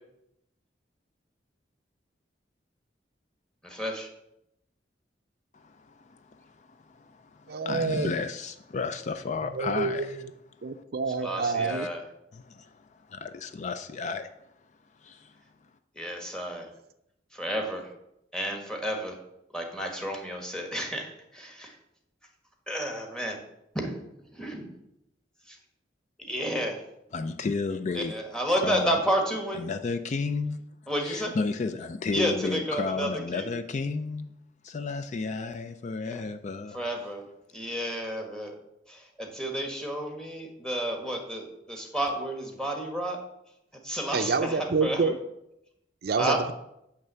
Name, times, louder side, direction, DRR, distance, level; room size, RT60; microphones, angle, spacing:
voice 1, 3.6-4.1 11.2-12.0 16.0-16.6 17.3-17.9 18.3-19.2 19.5-21.7 22.7-23.4 23.8-24.0 24.3-24.6 25.5-25.6 26.2-26.8 27.9-29.6 30.9-31.3 32.1-33.5 36.1-36.2 36.7-37.2 37.5-38.5 38.9-43.2 43.8-45.1 46.2-46.4, equal, 5° left, 2 dB, 1.3 m, -31 dB
voice 2, 5.5-10.2 11.7-11.9 12.3-14.5 15.0-15.3 27.1-28.1 28.6-29.0 29.5-30.6 31.0-34.3 34.6-36.8, left 4 dB, 40° left, 9 dB, 0.4 m, -33 dB
voice 3, 7.5-8.1 9.5-10.2 10.6-11.9 44.1-45.2 46.0-46.5, right 4 dB, 60° right, 10 dB, 0.5 m, -27 dB
8.9 x 3.4 x 6.8 m, 0.82 s
head